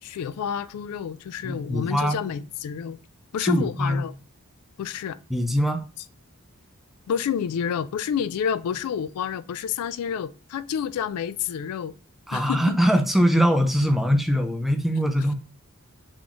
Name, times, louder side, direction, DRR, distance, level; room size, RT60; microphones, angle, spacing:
voice 1, 0.0-3.0 3.3-4.1 4.8-5.2 7.1-11.9 12.3-12.8, left 8 dB, 75° left, 0.3 m, -29 dB
voice 2, 1.4-2.2 3.4-4.0 5.3-5.9 12.3-15.3, equal, ahead, 0.5 m, -22 dB
4.0 x 3.1 x 3.6 m
head